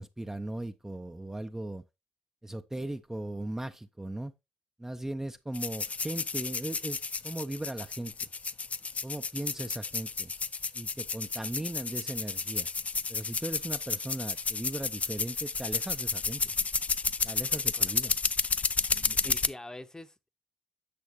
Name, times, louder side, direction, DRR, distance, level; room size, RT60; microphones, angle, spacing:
voice 1, 0.0-1.8 2.4-4.3 4.8-7.0 7.2-8.1 9.0-10.3 10.7-12.7 13.1-16.5 17.2-18.1 18.9-19.3, right 1 dB, 15° right, 0.6 m, -38 dB
sound 1, 5.5-19.5, left 4 dB, 40° left, 0.4 m, -32 dB
voice 2, 17.5-18.2 19.2-20.3, left 2 dB, 15° left, 0.9 m, -46 dB
8.5 x 6.3 x 3.0 m
hypercardioid pair, 45°, 4 cm